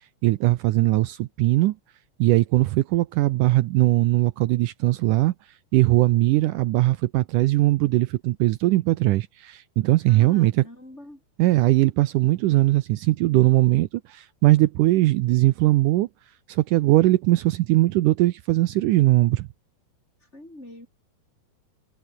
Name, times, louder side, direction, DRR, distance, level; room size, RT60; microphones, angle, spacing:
voice 1, 0.2-1.8 2.2-5.3 5.7-10.6 11.4-16.1 16.5-19.5, right 17 dB, 85° right, 1.8 m, -20 dB
voice 2, 10.1-11.2 20.2-20.9, left 1 dB, 15° left, 7.8 m, -44 dB
omnidirectional pair, 4.6 m